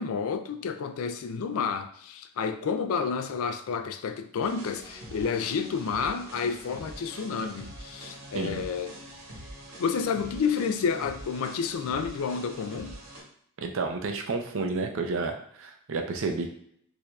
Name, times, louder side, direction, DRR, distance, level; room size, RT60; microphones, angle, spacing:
voice 1, 0.0-9.0 9.8-13.0, left 6 dB, 85° left, 0.4 m, -30 dB
sound 1, 4.4-13.2, equal, 85° right, 1.2 m, -44 dB
voice 2, 8.3-8.7 13.6-16.5, right 3 dB, 65° right, 0.5 m, -31 dB
4.6 x 2.6 x 2.3 m
head